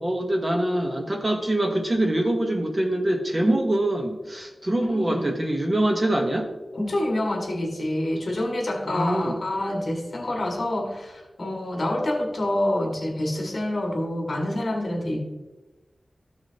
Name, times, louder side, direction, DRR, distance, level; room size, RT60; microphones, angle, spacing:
voice 1, 0.0-6.5 8.9-9.4, right 1 dB, 25° right, 3 dB, 1.1 m, -24 dB
voice 2, 4.8-5.3 6.7-15.2, left 1 dB, 55° left, 0 dB, 2.0 m, -27 dB
14.5 x 6.2 x 2.9 m, 1.1 s
wide cardioid pair, 100°, 0 cm